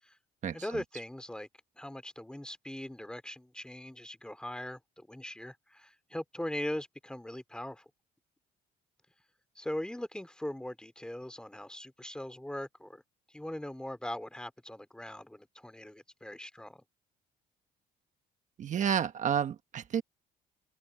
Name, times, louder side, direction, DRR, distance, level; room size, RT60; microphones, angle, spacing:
voice 1, 0.5-1.5 1.8-7.8 9.6-13.0 13.3-16.8, left 1 dB, 5° left, 2.8 m, -40 dB
voice 2, 18.6-20.0, right 8 dB, 45° right, 1.3 m, -30 dB
open air
cardioid pair, 110°, 17 cm